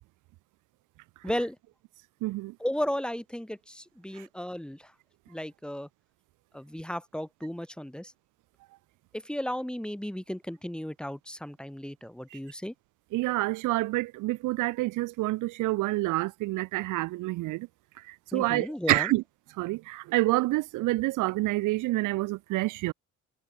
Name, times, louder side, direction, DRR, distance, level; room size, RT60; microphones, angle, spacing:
voice 1, 1.2-1.6 2.6-4.9 5.3-5.9 6.5-8.1 9.1-12.7 18.3-19.1, equal, 5° left, 5.3 m, -34 dB
voice 2, 2.2-2.5 4.2-4.3 12.3-12.4 13.1-17.7 18.1-19.2 19.6-22.9, right 19 dB, 85° right, 0.5 m, -28 dB
cardioid pair, 90°, 30 cm